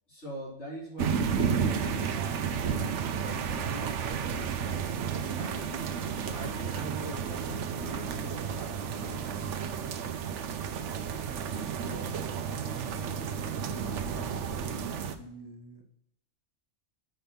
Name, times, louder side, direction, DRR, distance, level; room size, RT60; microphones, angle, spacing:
voice 1, 0.1-2.9 3.2-5.8 6.2-9.5, equal, 70° left, -5 dB, 4.6 m, -43 dB
sound 1, 1.0-15.1, right 7 dB, 85° right, 1.0 m, -32 dB
voice 2, 11.8-13.1 13.9-15.8, right 1 dB, 20° left, 4 dB, 1.1 m, -47 dB
7.8 x 5.2 x 5.8 m, 0.75 s
omnidirectional pair, 1.2 m